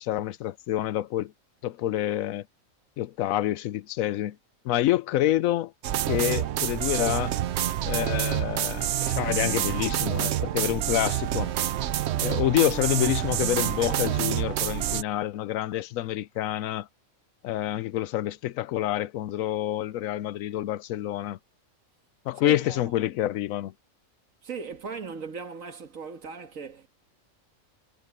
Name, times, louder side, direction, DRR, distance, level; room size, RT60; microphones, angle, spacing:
voice 1, 0.0-1.3 1.6-2.5 3.0-4.4 4.6-5.7 6.1-7.3 7.8-11.5 12.2-16.9 17.4-21.4 22.3-23.7, left 14 dB, 85° left, 1.0 m, -27 dB
sound 1, 5.8-15.0, right 11 dB, 65° right, 0.9 m, -27 dB
voice 2, 22.4-22.8 24.4-26.9, right 5 dB, 80° right, 2.0 m, -38 dB
omnidirectional pair, 1.4 m